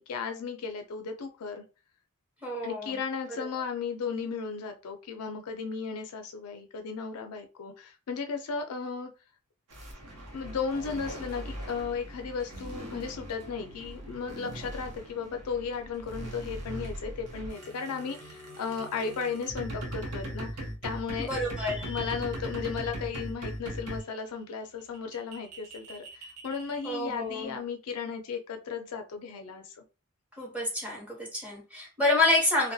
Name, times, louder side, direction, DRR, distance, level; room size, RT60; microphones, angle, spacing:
voice 1, 0.0-1.6 2.6-9.1 10.3-20.5 20.8-21.3 21.9-29.8, left 5 dB, 75° left, 5 dB, 0.4 m, -35 dB
voice 2, 2.4-3.0 21.2-22.2 26.8-27.6 30.4-32.7, left 2 dB, 5° right, -4 dB, 0.9 m, -28 dB
sound 1, 9.7-24.1 24.8-27.2, right 1 dB, 90° right, 0.7 m, -40 dB
2.3 x 2.1 x 2.6 m, 0.31 s
head